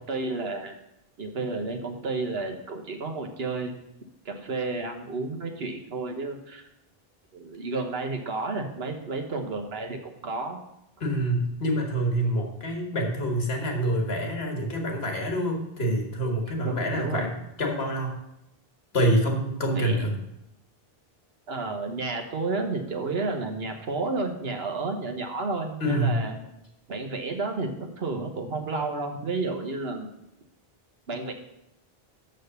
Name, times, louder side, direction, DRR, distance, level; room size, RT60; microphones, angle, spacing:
voice 1, 0.1-0.7 1.2-3.8 4.2-6.7 7.3-10.6 16.6-17.3 19.7-20.2 21.5-26.4 26.9-30.1 31.1-31.3, right 3 dB, 80° right, 4 dB, 1.4 m, -31 dB
voice 2, 11.0-18.1 18.9-20.1 25.8-26.3, right 1 dB, 80° left, 2 dB, 1.8 m, -26 dB
6.6 x 6.4 x 6.7 m, 0.84 s
omnidirectional pair, 1.0 m